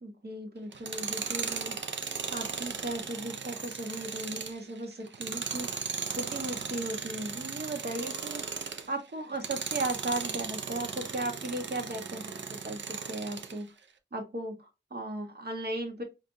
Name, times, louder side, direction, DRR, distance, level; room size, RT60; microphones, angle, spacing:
voice 1, 0.0-1.9 2.3-13.7 14.1-16.0, right 1 dB, 55° right, 3 dB, 1.3 m, -37 dB
Tools, 0.7-8.9 9.3-13.6, right 5 dB, 75° right, 0.6 m, -37 dB
5.1 x 2.3 x 2.7 m, 0.25 s
wide cardioid pair, 105°, 19 cm